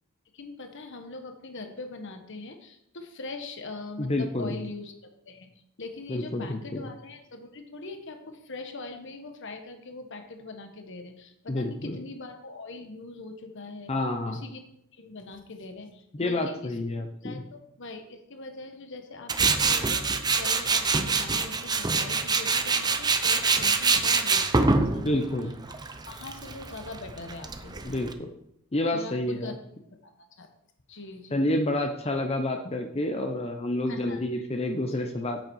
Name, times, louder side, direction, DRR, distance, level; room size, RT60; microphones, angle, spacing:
voice 1, 0.3-5.5 5.8-13.9 14.2-14.6 14.9-16.7 17.2-25.2 26.1-27.9 28.8-29.6 30.0-30.1 30.4-30.5 30.9-31.5 33.9-34.5 35.2-35.3, left 3 dB, 60° left, 6 dB, 1.2 m, -42 dB
voice 2, 4.0-4.6 6.1-6.9 11.5-12.0 13.9-14.4 16.1-17.4 25.0-25.5 27.8-28.3 28.7-29.5 31.3-35.4, left 1 dB, 30° left, 4 dB, 0.8 m, -29 dB
Tools, 19.3-28.1, right 4 dB, 20° right, 0.7 m, -25 dB
8.9 x 8.5 x 4.7 m, 0.76 s
head